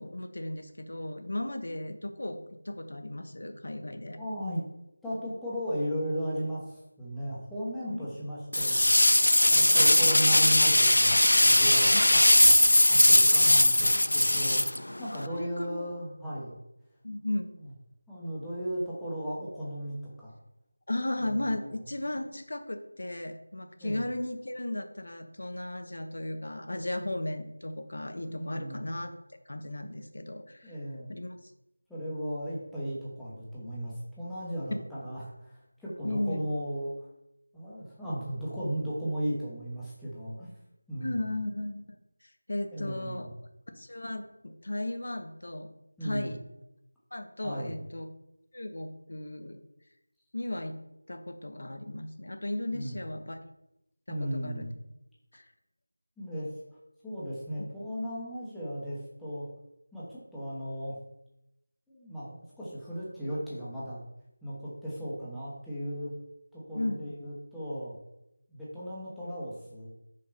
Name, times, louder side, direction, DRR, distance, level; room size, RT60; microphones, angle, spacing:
voice 1, 0.0-4.2 7.9-8.1 11.9-12.0 15.3-15.9 17.0-17.5 20.9-29.1 29.5-30.8 31.1-31.5 34.7-34.8 36.0-36.5 41.0-42.0 42.2-43.3 43.8-45.7 46.0-46.4 47.1-48.1 48.5-49.6 50.3-50.7 51.1-53.4 54.1-54.2 54.4-54.7 55.3-55.5 66.7-67.0, left 1 dB, 60° left, 7 dB, 1.0 m, -35 dB
voice 2, 4.2-4.6 5.0-9.1 9.5-12.6 12.9-16.6 17.6-17.7 18.1-20.3 21.2-21.8 23.8-24.0 28.2-28.9 30.6-31.1 31.9-37.1 37.5-40.5 40.9-41.3 42.7-43.3 46.0-46.3 47.4-47.7 52.7-53.0 54.1-54.7 56.2-56.5 57.0-59.5 59.9-61.0 61.9-64.0 64.4-66.1 66.5-68.0 68.5-69.9, equal, ahead, -11 dB, 1.1 m, -36 dB
sound 1, 8.5-15.3, left 1 dB, 75° left, 0.4 m, -20 dB
5.4 x 5.3 x 4.1 m, 0.87 s
figure-of-eight pair, 170°, 0 cm